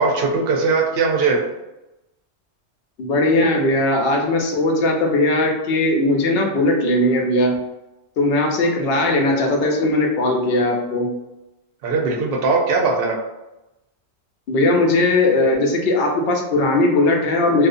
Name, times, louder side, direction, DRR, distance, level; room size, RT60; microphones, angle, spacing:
voice 1, 0.0-1.4 11.8-13.2, right 4 dB, 65° right, 0 dB, 0.7 m, -19 dB
voice 2, 3.0-7.6 8.2-11.1 14.5-17.7, left 2 dB, 65° left, 1 dB, 0.7 m, -18 dB
2.6 x 2.1 x 2.5 m, 0.97 s
omnidirectional pair, 1.1 m